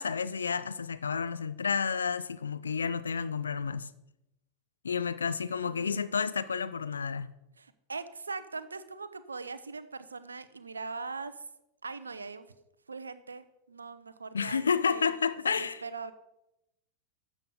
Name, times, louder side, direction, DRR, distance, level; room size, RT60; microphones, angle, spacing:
voice 1, 0.0-3.9 4.8-7.3 14.3-15.8, left 6 dB, 70° left, 0.5 m, -30 dB
voice 2, 5.6-6.2 7.6-11.5 11.8-12.5 12.9-15.1 15.5-16.1, right 4 dB, 75° right, 0.8 m, -41 dB
12.5 x 7.9 x 5.2 m
figure-of-eight pair, 90°, 0 cm